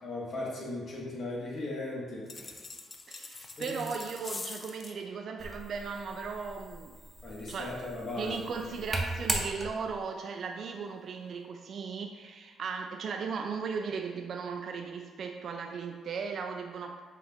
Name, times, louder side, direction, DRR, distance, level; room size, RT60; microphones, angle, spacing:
voice 1, 0.0-2.6 3.6-3.8 7.2-8.4 9.1-9.3, left 2 dB, 50° left, -5 dB, 1.4 m, -38 dB
sound 1, 2.3-5.0, left 3 dB, 30° left, 0.4 m, -43 dB
voice 2, 3.1-6.9 7.5-7.8 8.2-17.0, right 5 dB, 60° right, 4 dB, 0.3 m, -37 dB
sound 2, 5.4-10.1, right 2 dB, 25° right, 0.6 m, -37 dB
5.1 x 2.4 x 3.5 m, 1.5 s
cardioid pair, 90°, 0 cm